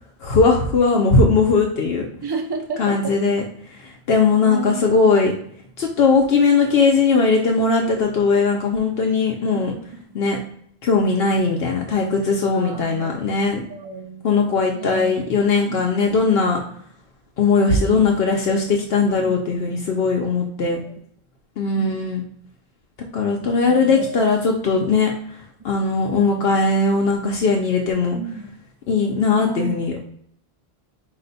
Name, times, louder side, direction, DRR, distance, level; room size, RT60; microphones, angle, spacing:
voice 1, 0.2-2.1 2.8-3.4 3.7-5.3 5.8-9.7 10.1-10.4 10.8-13.6 14.2-16.6 17.4-20.8 21.6-22.2 23.1-25.1 25.6-28.2 28.9-30.0, left 4 dB, 70° left, 0 dB, 0.9 m, -19 dB
voice 2, 2.2-3.2 4.4-5.0 9.5-9.7 10.1-10.2 12.5-13.4 13.7-14.3 14.7-15.1 15.6-15.8 17.5-18.1 19.2-19.4 20.8-20.9 21.7-22.3 23.2-24.2 28.1-28.5 29.4-29.8, right 4 dB, 35° right, 4 dB, 0.4 m, -33 dB
4.8 x 2.1 x 3.9 m, 0.65 s
omnidirectional pair, 1.1 m